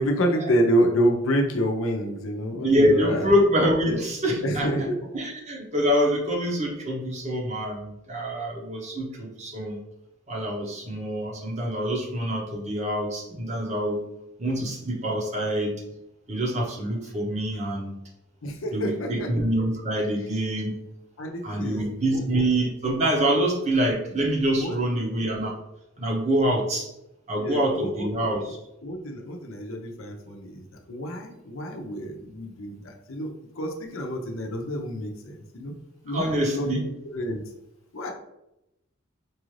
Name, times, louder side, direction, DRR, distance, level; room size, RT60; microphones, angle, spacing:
voice 1, 0.0-3.3 3.8-4.1 4.4-5.0 18.4-19.3 21.2-22.4 23.3-23.4 24.6-24.8 27.3-28.3 28.8-35.7 36.0-37.4 37.9-38.1, equal, 75° left, 2 dB, 0.7 m, -28 dB
voice 2, 2.6-9.8 10.3-14.0 14.4-15.8 16.3-17.9 18.7-20.8 21.4-25.6 26.0-26.9 27.3-28.6 36.1-36.8, equal, 35° right, -1 dB, 0.8 m, -25 dB
4.6 x 2.5 x 3.2 m, 0.87 s
head